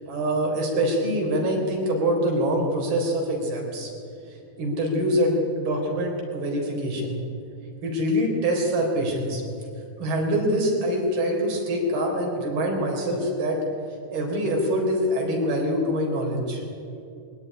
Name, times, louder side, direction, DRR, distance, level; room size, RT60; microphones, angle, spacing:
voice 1, 0.1-3.9 4.6-7.2 7.8-9.4 10.0-13.6 14.1-16.6, equal, 70° right, 0 dB, 5.7 m, -24 dB
21.5 x 17.5 x 9.8 m, 2.7 s
omnidirectional pair, 4.5 m